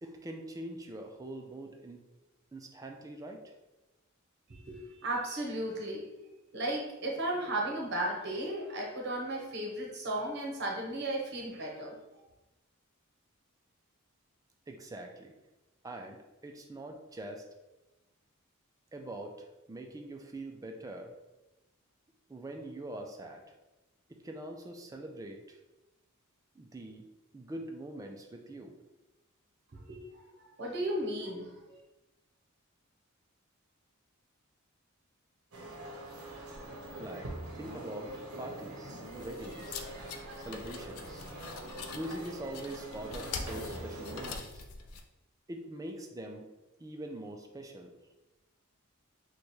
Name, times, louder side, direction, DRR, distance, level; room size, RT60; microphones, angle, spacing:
voice 1, 0.0-2.0 2.5-3.5 14.7-15.3 15.8-17.5 18.9-21.1 22.3-23.4 24.1-25.6 26.5-27.1 27.3-28.8 37.0-39.8 40.5-41.3 41.9-44.7 45.5-46.5 46.8-47.9, right 1 dB, 15° right, 3 dB, 0.4 m, -43 dB
voice 2, 4.5-6.0 6.5-12.2 29.9-30.0 30.4-31.8, right 1 dB, 55° right, -1 dB, 0.9 m, -35 dB
sound 1, 35.5-44.3, right 1 dB, 80° right, 0.7 m, -44 dB
sound 2, 39.0-45.0, left 5 dB, 80° left, 0.4 m, -44 dB
3.1 x 2.3 x 4.2 m, 1.0 s
head